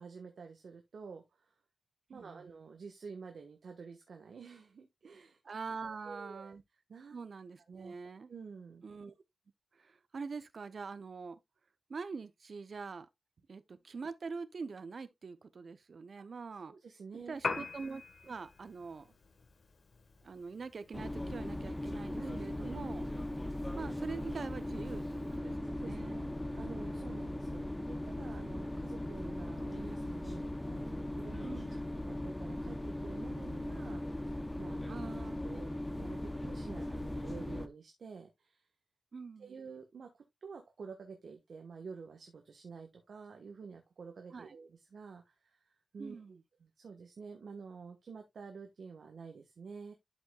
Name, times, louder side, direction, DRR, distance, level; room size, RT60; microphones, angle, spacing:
voice 1, 0.0-1.5 2.1-5.4 5.8-6.5 6.9-7.2 7.7-8.0 8.3-8.8 16.2-16.3 16.7-17.4 22.2-22.7 25.3-25.4 25.6-31.5 32.1-35.0 35.4-38.7 39.4-45.6 45.9-46.2 46.6-49.9, right 5 dB, 70° right, 1.2 m, -49 dB
voice 2, 2.1-2.4 5.4-6.6 7.1-8.3 8.8-9.1 9.8-11.4 11.9-13.1 13.5-16.7 17.3-19.1 20.2-23.1 23.7-26.3 31.4-31.7 34.9-35.6 39.1-39.5 44.3-44.6 46.0-46.4, right 4 dB, 55° right, 0.7 m, -44 dB
Piano, 17.3-25.4, left 4 dB, 55° left, 1.3 m, -46 dB
sound 1, 20.9-37.7, left 1 dB, 15° left, 0.7 m, -39 dB
12.0 x 5.3 x 2.3 m
wide cardioid pair, 155°, 0 cm